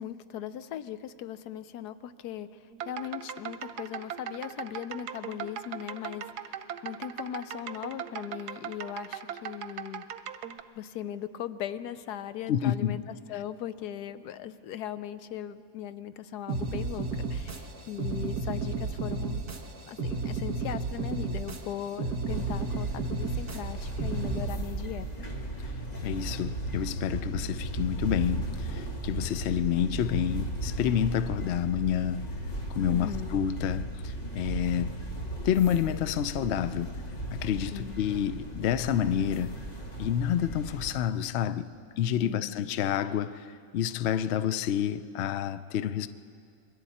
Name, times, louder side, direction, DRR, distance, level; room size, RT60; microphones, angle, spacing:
voice 1, 0.0-10.1 10.8-19.4 19.9-25.3 32.9-33.4 37.7-38.0 42.2-42.5, left 10 dB, 85° left, 1.2 m, -39 dB
sound 1, 2.7-10.6, right 9 dB, 90° right, 1.3 m, -39 dB
voice 2, 12.5-13.0 25.6-32.3 32.7-35.0 35.4-36.9 37.3-39.6 40.0-41.7 42.0-46.1, left 9 dB, 60° left, 0.7 m, -29 dB
sound 2, 16.5-24.5, right 3 dB, 70° right, 2.1 m, -33 dB
sound 3, 22.3-40.9, right 2 dB, 25° left, 1.7 m, -36 dB
27.5 x 22.0 x 4.3 m
omnidirectional pair, 1.7 m